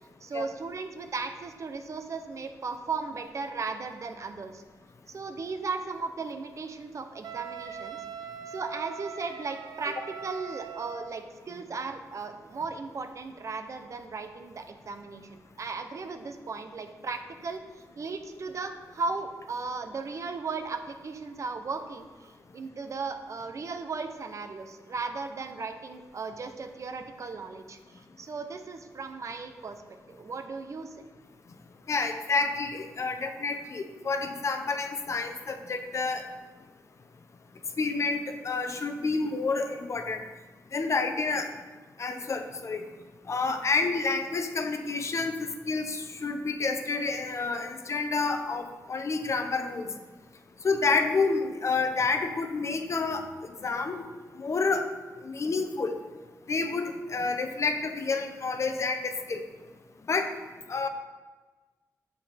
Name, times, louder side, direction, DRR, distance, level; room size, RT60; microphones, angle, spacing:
voice 1, 0.2-4.6 5.1-8.0 8.5-10.0 10.2-29.8 30.1-31.0, right 4 dB, 50° right, 7 dB, 0.8 m, -36 dB
Wind instrument woodwind instrument, 7.2-11.1, right 7 dB, 85° right, 0.6 m, -41 dB
voice 2, 31.9-36.2 37.8-40.2 40.7-41.5 42.0-42.8 43.3-49.9 50.6-53.3 53.6-54.0 54.4-54.9 55.2-56.0 56.5-59.4 60.1-60.3 60.7-60.9, left 4 dB, 50° left, 6 dB, 0.8 m, -29 dB
8.1 x 7.5 x 3.5 m, 1.3 s
cardioid pair, 95°, 7 cm